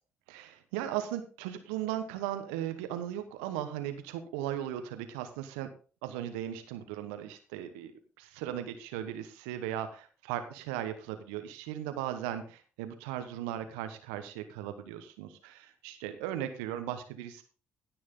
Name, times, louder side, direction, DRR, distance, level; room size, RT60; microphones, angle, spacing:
voice 1, 0.3-5.7 6.0-7.9 8.2-17.4, right 11 dB, 80° right, 9 dB, 1.2 m, -37 dB
16.0 x 6.3 x 3.8 m, 0.37 s
hypercardioid pair, 45°, 6 cm